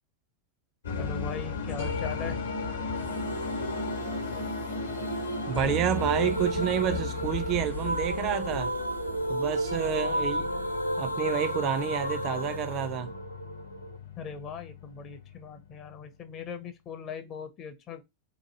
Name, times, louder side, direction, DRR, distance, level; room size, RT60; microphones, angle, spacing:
sound 1, 0.8-16.0, left 5 dB, 70° left, 0.9 m, -36 dB
voice 1, 1.0-2.4 14.2-18.0, left 6 dB, 35° left, 0.6 m, -39 dB
sound 2, 3.0-14.0, right 1 dB, 90° left, 0.4 m, -33 dB
voice 2, 5.5-8.7 9.3-10.5 11.0-13.1, right 9 dB, 35° right, 0.5 m, -29 dB
2.9 x 2.5 x 3.8 m
figure-of-eight pair, 90°, 0 cm